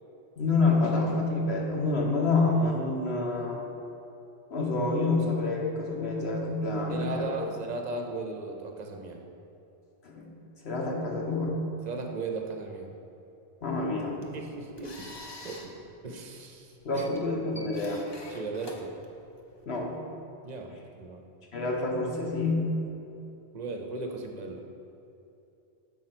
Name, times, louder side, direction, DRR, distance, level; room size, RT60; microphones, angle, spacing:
voice 1, 0.4-3.6 4.5-7.3 10.0-10.3 10.6-11.6 13.6-14.3 16.8-18.0 19.7-20.0 21.5-22.7, left 3 dB, 75° left, -1 dB, 1.4 m, -27 dB
voice 2, 6.9-9.2 11.9-12.9 14.3-15.1 15.4-15.7 16.0-17.1 18.3-18.9 20.4-21.2 23.5-24.6, right 3 dB, 45° right, 3 dB, 0.7 m, -37 dB
sound 1, 14.0-19.6, left 2 dB, 30° left, 0.7 m, -48 dB
7.2 x 4.3 x 6.0 m, 2.8 s
omnidirectional pair, 1.1 m